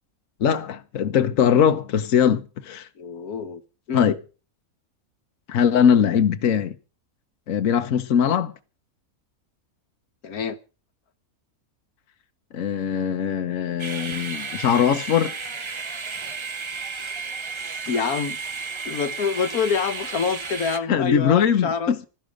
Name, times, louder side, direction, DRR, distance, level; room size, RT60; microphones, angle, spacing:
voice 1, 0.4-2.9 3.9-4.1 5.5-6.8 7.5-8.5 12.5-15.3 20.9-22.0, left 8 dB, 65° left, 1.3 m, -21 dB
voice 2, 3.0-3.6 3.9-4.1 10.2-10.6 17.9-18.4 18.9-22.1, left 5 dB, 80° left, 1.6 m, -26 dB
sound 1, 13.8-20.8, right 4 dB, 25° right, 0.6 m, -33 dB
16.5 x 13.0 x 5.1 m
omnidirectional pair, 1.5 m